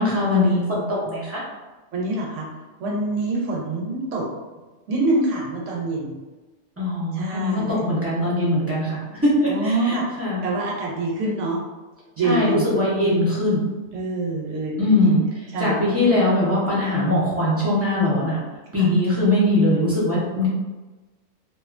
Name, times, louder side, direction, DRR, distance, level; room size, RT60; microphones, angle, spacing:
voice 1, 0.0-1.4 6.8-10.5 12.2-13.6 14.8-18.4 18.7-20.5, left 1 dB, 15° right, -8 dB, 0.5 m, -21 dB
voice 2, 1.9-2.5 2.8-4.3 4.9-6.1 7.1-7.9 9.5-11.6 12.2-12.7 13.9-15.2 15.5-15.7, right 2 dB, 70° right, -3 dB, 0.9 m, -25 dB
2.6 x 2.3 x 2.5 m, 1.2 s
omnidirectional pair, 1.4 m